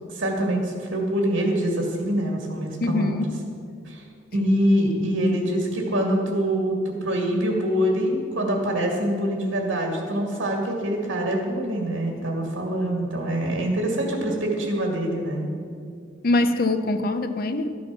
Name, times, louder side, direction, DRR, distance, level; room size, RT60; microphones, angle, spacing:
voice 1, 0.1-3.2 3.8-4.0 4.3-15.5, equal, 80° right, 1 dB, 2.2 m, -25 dB
voice 2, 2.8-3.4 16.2-17.8, left 2 dB, 50° left, 9 dB, 0.7 m, -23 dB
12.5 x 8.5 x 6.1 m, 2.3 s
head